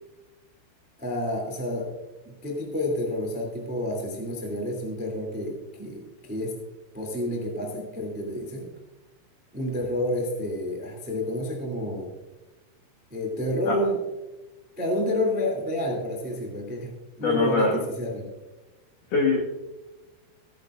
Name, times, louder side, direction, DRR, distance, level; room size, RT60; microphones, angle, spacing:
voice 1, 1.0-1.9 2.2-6.6 6.9-8.7 9.5-12.1 13.1-14.0 14.8-18.3, left 1 dB, 5° right, 0 dB, 0.9 m, -29 dB
voice 2, 17.2-17.8 19.1-19.4, left 3 dB, 70° left, 0 dB, 1.9 m, -23 dB
17.0 x 9.6 x 2.5 m, 1.1 s
omnidirectional pair, 5.7 m